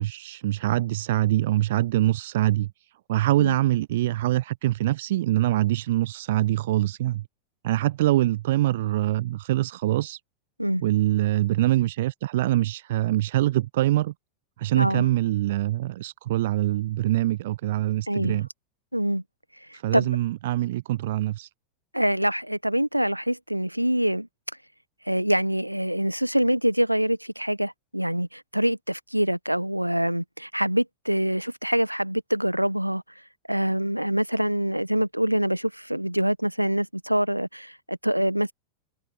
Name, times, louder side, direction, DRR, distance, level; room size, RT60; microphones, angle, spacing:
voice 1, 0.0-2.7 3.1-7.2 7.6-10.2 10.8-14.1 14.6-18.5 19.7-21.5, right 15 dB, 55° right, 0.4 m, -24 dB
voice 2, 14.8-15.1 18.1-18.4 18.9-19.2 19.7-20.1 21.9-24.3 25.0-33.0 33.5-38.5, equal, 90° right, 1.5 m, -25 dB
figure-of-eight pair, 90°, 0 cm